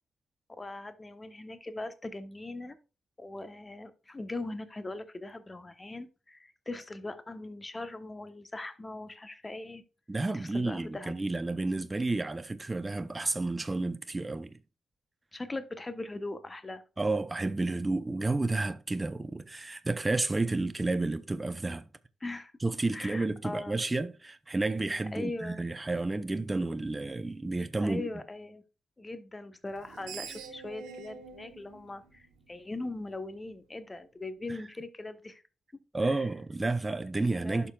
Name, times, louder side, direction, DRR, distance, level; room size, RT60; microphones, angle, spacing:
voice 1, 0.5-2.8 3.2-9.8 10.3-11.1 15.3-16.8 22.2-22.5 22.9-23.8 24.8-25.6 27.8-28.6 29.0-35.4 36.0-36.4 37.3-37.7, left 2 dB, 25° left, 1.1 m, -40 dB
voice 2, 10.1-14.5 17.0-21.9 22.6-28.1 34.5-34.6 35.9-37.7, right 2 dB, 25° right, 0.6 m, -31 dB
Screech, 29.7-32.9, right 6 dB, 80° right, 1.0 m, -46 dB
11.5 x 5.4 x 2.4 m
hypercardioid pair, 40°, 0 cm